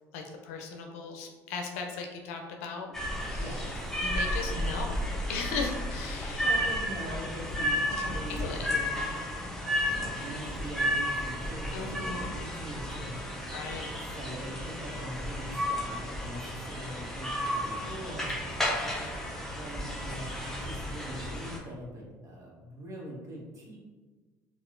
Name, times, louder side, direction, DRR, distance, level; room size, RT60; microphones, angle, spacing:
voice 1, 0.1-3.6 4.0-4.9 5.3-6.5 7.9-8.7 11.7-12.3 13.5-13.9 18.8-19.2, left 4 dB, 85° left, 3 dB, 0.5 m, -38 dB
sound 1, 2.9-21.6, equal, 5° left, 0.7 m, -33 dB
voice 2, 3.3-3.7 4.4-4.7 6.4-7.8 8.1-9.1 9.8-13.2 14.1-18.3 19.6-23.8, right 1 dB, 40° right, -3 dB, 1.2 m, -42 dB
4.1 x 2.4 x 2.5 m, 1.4 s
supercardioid pair, 80°, 8 cm